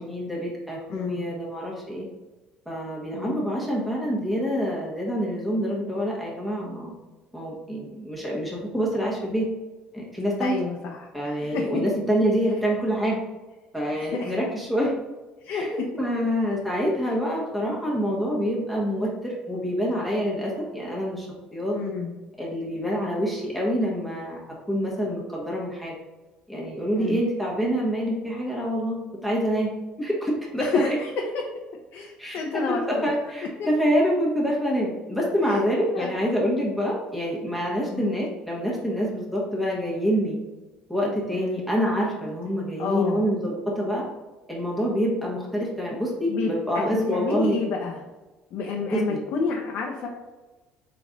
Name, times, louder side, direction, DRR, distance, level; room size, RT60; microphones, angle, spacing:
voice 1, 0.0-2.0 2.7-6.9 7.3-9.5 9.9-10.6 11.1-13.2 13.7-14.9 15.5-21.3 21.5-21.8 22.4-24.4 24.7-25.9 26.5-29.7 30.0-31.0 32.2-32.4 32.7-40.4 40.9-44.0 44.5-47.6 48.8-49.2, equal, ahead, -4 dB, 1.2 m, -26 dB
voice 2, 0.9-1.2 3.1-3.4 10.4-11.8 13.9-14.3 15.4-15.7 17.6-17.8 21.7-22.1 26.9-27.2 30.6-31.3 31.9-33.1 33.6-33.7 35.4-35.6 35.9-36.1 37.9-38.2 41.3-41.6 42.8-43.3 46.3-48.0 48.5-50.1, left 4 dB, 65° left, 0 dB, 0.7 m, -30 dB
3.9 x 3.3 x 3.7 m, 1.2 s
supercardioid pair, 85°, 3 cm